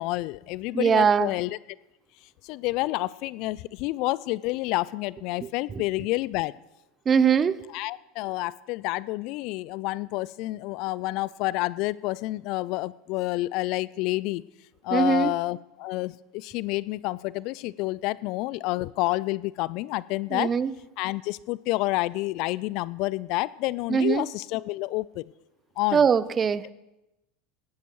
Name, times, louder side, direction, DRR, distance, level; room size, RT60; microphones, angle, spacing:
voice 1, 0.0-1.6 2.4-6.5 7.7-14.4 14.8-20.5 21.0-25.3 25.8-26.0, left 19 dB, 55° left, 21 dB, 0.3 m, -29 dB
voice 2, 0.7-1.3 5.4-5.8 7.1-7.7 14.9-15.3 20.3-20.7 23.9-24.3 25.9-26.7, right 6 dB, 30° right, 17 dB, 0.6 m, -22 dB
17.5 x 12.0 x 3.1 m, 0.93 s
hypercardioid pair, 80°, 0 cm